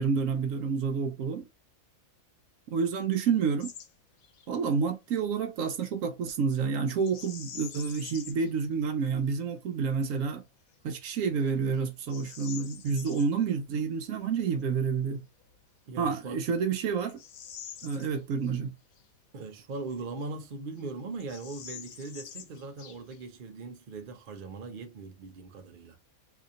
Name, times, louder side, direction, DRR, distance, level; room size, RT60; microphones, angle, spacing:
voice 1, 0.0-1.4 2.7-3.7 4.5-10.4 10.8-15.2 16.0-17.2 17.8-18.7, right 5 dB, 75° right, 1.0 m, -29 dB
Bird vocalization bird call bird song, 3.6-3.9 4.2-4.5 7.0-8.5 9.1-9.2 9.8-10.2 10.7-10.8 11.4-13.3 15.4-15.5 16.1-18.6 18.9-19.0 19.7-20.5 20.8-20.9 21.1-23.3, left 8 dB, 80° left, 1.1 m, -46 dB
voice 2, 15.9-16.4 19.3-26.0, right 3 dB, 50° right, 0.7 m, -40 dB
2.8 x 2.7 x 3.6 m
omnidirectional pair, 1.5 m